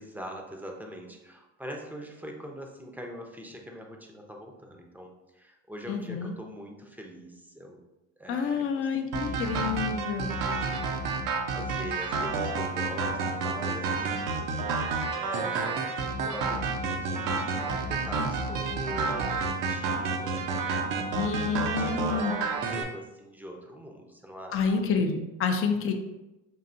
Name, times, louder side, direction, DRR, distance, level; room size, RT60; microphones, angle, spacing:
voice 1, 0.0-7.8 8.2-8.9 9.1-9.4 10.2-11.3 11.5-14.2 15.1-20.5 21.5-24.6, equal, 5° right, 1 dB, 0.6 m, -43 dB
voice 2, 5.9-6.3 8.3-10.4 21.1-22.3 24.5-25.9, left 5 dB, 35° left, 5 dB, 0.5 m, -28 dB
sound 1, 9.1-22.8, right 4 dB, 55° right, 0.7 m, -30 dB
5.5 x 2.6 x 2.6 m, 0.98 s
supercardioid pair, 95°, 38 cm